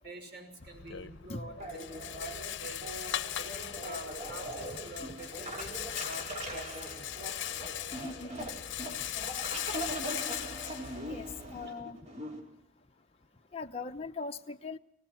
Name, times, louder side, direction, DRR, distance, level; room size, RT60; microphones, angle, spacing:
voice 1, 0.0-1.9 2.1-2.3 2.6-2.8 3.2-7.1 8.8-9.1 11.6-11.8, right 1 dB, 55° right, 6 dB, 5.7 m, -47 dB
Rattle, 0.6-11.7, left 11 dB, 65° left, 0.9 m, -39 dB
sound 1, 1.6-12.4, right 1 dB, 35° right, 5.7 m, -41 dB
voice 2, 8.0-8.5 9.2-9.3 11.1-12.0 13.5-14.8, left 4 dB, 30° left, 4 dB, 0.8 m, -40 dB
24.5 x 18.5 x 5.9 m, 0.75 s
head